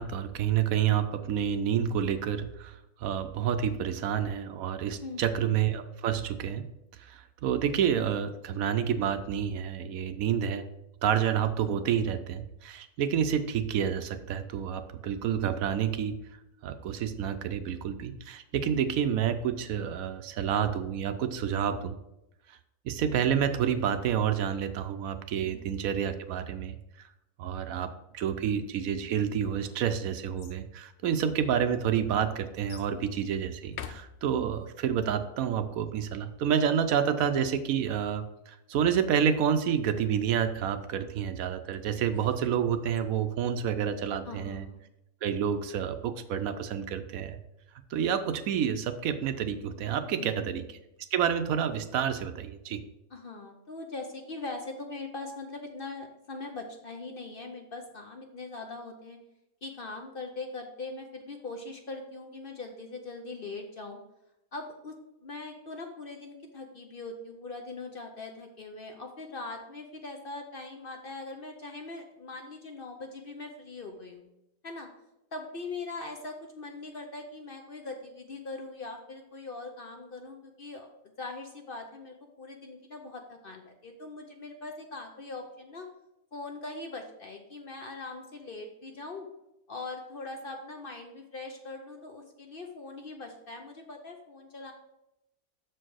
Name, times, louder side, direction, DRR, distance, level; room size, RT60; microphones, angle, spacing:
voice 1, 0.0-6.6 7.0-10.6 11.0-16.2 16.6-22.0 22.8-27.1 27.4-27.9 28.1-44.6 45.2-47.4 47.9-50.6 51.1-52.8, right 8 dB, 75° right, 9 dB, 1.0 m, -29 dB
voice 2, 5.0-5.3 25.4-25.7 44.2-44.8 50.2-50.5 53.1-59.2 59.6-64.0 64.5-65.0 65.2-74.3 74.6-74.9 75.3-85.9 86.3-89.3 89.7-94.7, left 3 dB, 50° left, 3 dB, 0.7 m, -41 dB
sound 1, 29.3-30.6 31.4-31.5 32.7-33.0 33.6-34.7 41.7-43.0, left 8 dB, 90° left, 0.5 m, -47 dB
6.8 x 4.5 x 6.2 m, 0.89 s
omnidirectional pair, 1.6 m